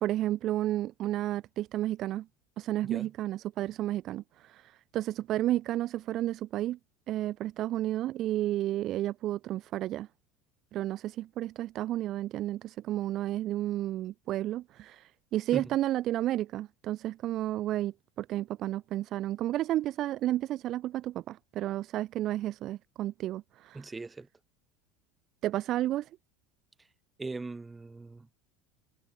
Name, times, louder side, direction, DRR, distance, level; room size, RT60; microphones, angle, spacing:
voice 1, 0.0-2.3 2.6-6.8 7.1-10.1 10.7-23.8 25.4-26.1, right 14 dB, 45° right, 0.6 m, -32 dB
voice 2, 23.7-24.3 27.2-28.3, right 3 dB, 15° right, 4.5 m, -39 dB
supercardioid pair, 120°, 0 cm